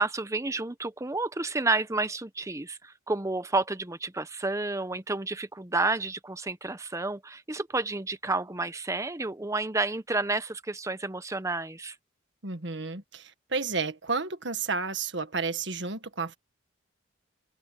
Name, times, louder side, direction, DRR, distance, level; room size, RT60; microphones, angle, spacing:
voice 1, 0.0-12.0, right 3 dB, 15° right, 0.8 m, -30 dB
voice 2, 12.4-16.3, right 4 dB, 65° right, 1.7 m, -31 dB
open air
head